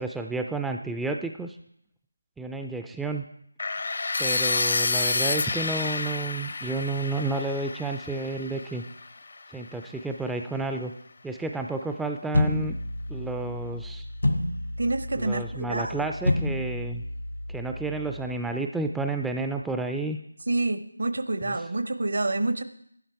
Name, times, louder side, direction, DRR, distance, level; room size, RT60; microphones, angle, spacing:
voice 1, 0.0-1.6 2.4-3.2 4.2-8.8 9.5-10.9 11.2-12.7 13.1-14.1 15.1-17.0 17.5-20.2 21.4-21.6, right 3 dB, 5° right, 4 dB, 0.3 m, -31 dB
sound 1, 3.6-9.5, left 3 dB, 55° left, 0.6 m, -29 dB
sound 2, 12.3-18.4, left 1 dB, 90° left, 1.8 m, -30 dB
voice 2, 14.8-16.1 20.5-22.6, right 2 dB, 65° right, 11 dB, 0.9 m, -28 dB
12.0 x 10.5 x 4.6 m, 0.74 s
figure-of-eight pair, 160°, 0 cm